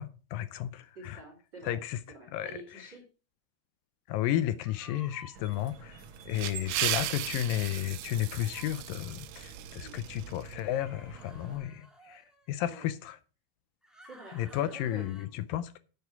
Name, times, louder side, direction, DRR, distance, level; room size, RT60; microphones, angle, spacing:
voice 1, 0.0-1.2 1.6-2.0 2.3-2.5 4.1-13.2 14.3-15.8, left 12 dB, 80° left, 2.1 m, -33 dB
voice 2, 1.0-1.8 2.1-3.0 6.3-6.8 9.5-9.9 12.7-12.9 14.1-15.1, right 3 dB, 30° right, 3.5 m, -49 dB
sound 1, 4.6-5.4 6.8-7.1 8.4-8.8 10.6-12.5 13.8-15.3, equal, ahead, 1.1 m, -54 dB
sound 2, 5.3-11.6, right 6 dB, 60° right, 2.1 m, -49 dB
sound 3, 6.0-10.6, right 13 dB, 90° right, 2.7 m, -36 dB
9.7 x 8.1 x 4.7 m
omnidirectional pair, 4.4 m